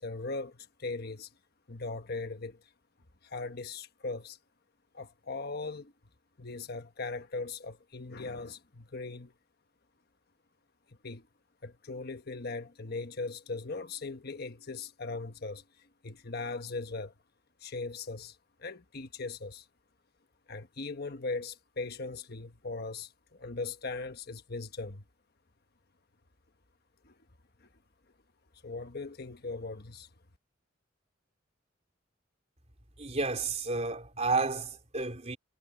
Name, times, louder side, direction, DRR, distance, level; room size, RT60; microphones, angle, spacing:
voice 1, 0.0-1.3 1.7-2.6 3.2-4.4 4.9-5.9 6.4-9.3 11.0-11.2 11.6-15.6 16.0-17.1 17.6-19.7 20.5-25.0 27.0-27.1 27.6-27.7 28.6-30.1, left 3 dB, 55° left, 1.3 m, -39 dB
voice 2, 33.0-35.4, right 3 dB, 35° right, 3.5 m, -31 dB
head